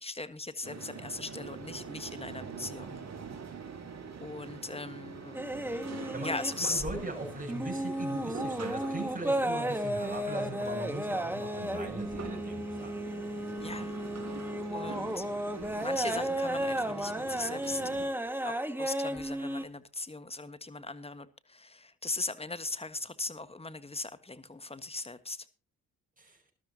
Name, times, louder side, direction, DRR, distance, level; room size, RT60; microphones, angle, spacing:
voice 1, 0.0-2.9 4.2-5.4 6.2-6.8 13.6-14.0 14.7-15.2 15.8-17.8 18.4-25.5, left 3 dB, 15° left, 1.5 m, -38 dB
sound 1, 0.6-18.1, right 5 dB, 45° right, 2.9 m, -44 dB
sound 2, 5.3-7.1 7.4-19.6, right 1 dB, 5° right, 1.8 m, -34 dB
voice 2, 6.6-12.9 26.2-26.4, right 1 dB, 20° right, 7.2 m, -39 dB
20.0 x 12.5 x 2.9 m
supercardioid pair, 55°, 36 cm